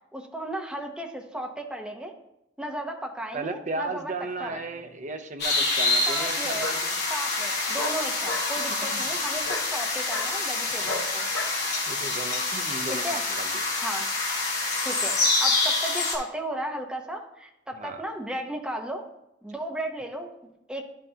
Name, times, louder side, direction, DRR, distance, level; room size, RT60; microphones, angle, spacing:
voice 1, 0.1-2.1 2.6-4.1 4.4-4.6 6.1-6.7 7.1-11.3 12.9-13.2 13.8-14.1 14.8-19.0 19.4-20.9, right 1 dB, 5° right, 1 dB, 0.8 m, -35 dB
voice 2, 3.3-6.9 8.8-9.1 10.8-10.9 11.9-13.6 17.7-18.0, right 3 dB, 40° right, 7 dB, 0.6 m, -35 dB
Bark, 4.4-5.1 6.6-6.8 7.8-8.5 9.4-9.7 10.1-10.3 10.8-11.6, left 2 dB, 85° left, 1.2 m, -33 dB
sound 1, 5.4-16.1, left 3 dB, 55° left, 2.2 m, -27 dB
10.5 x 5.5 x 2.8 m, 0.87 s
head